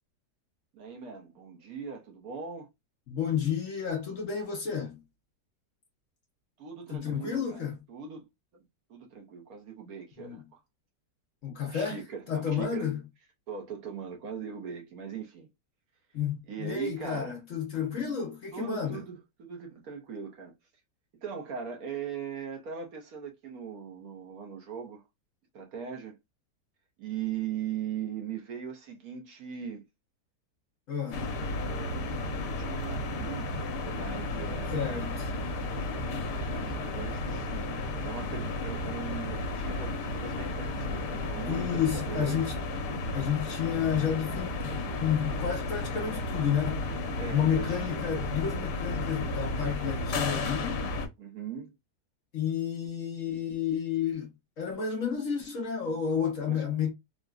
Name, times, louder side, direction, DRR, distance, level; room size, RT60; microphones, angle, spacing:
voice 1, 0.7-2.7 6.6-8.3 8.5-8.6 8.9-10.6 11.7-12.9 13.5-15.5 16.5-17.4 18.5-20.5 21.2-25.0 25.5-26.2 27.0-29.8 31.6-32.1 32.4-35.2 36.5-42.4 47.2-47.9 51.2-51.7 56.5-56.6, right 7 dB, 65° right, 1.2 m, -40 dB
voice 2, 3.1-5.0 6.9-7.8 10.2-10.4 11.4-12.0 12.3-13.0 16.1-19.0 30.9-31.3 34.7-35.3 41.5-42.5 43.1-44.7 45.0-47.0 47.3-50.8 52.3-54.3 54.6-56.9, left 8 dB, 60° left, 0.9 m, -31 dB
sound 1, 31.1-51.1, left 2 dB, 85° left, 1.3 m, -33 dB
3.8 x 2.1 x 2.3 m
omnidirectional pair, 1.8 m